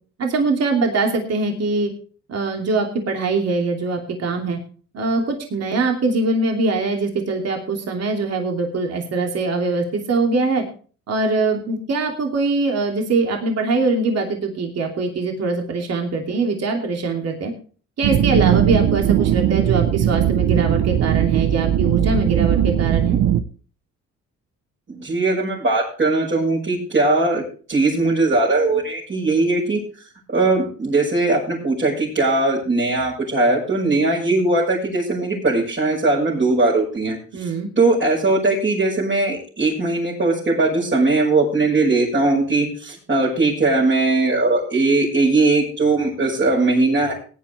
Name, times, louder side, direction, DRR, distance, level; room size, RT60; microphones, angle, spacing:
voice 1, 0.2-1.9 2.3-4.6 4.9-10.6 11.1-17.5 18.0-23.2 37.3-37.7, right 3 dB, 55° right, 2 dB, 2.9 m, -22 dB
sound 1, 18.0-23.4, right 11 dB, 85° right, 0.9 m, -19 dB
voice 2, 24.9-27.4 27.7-29.8 30.3-37.5 37.8-47.1, right 2 dB, 40° right, -6 dB, 6.0 m, -19 dB
17.5 x 10.5 x 3.4 m, 0.40 s
cardioid pair, 90°, 30 cm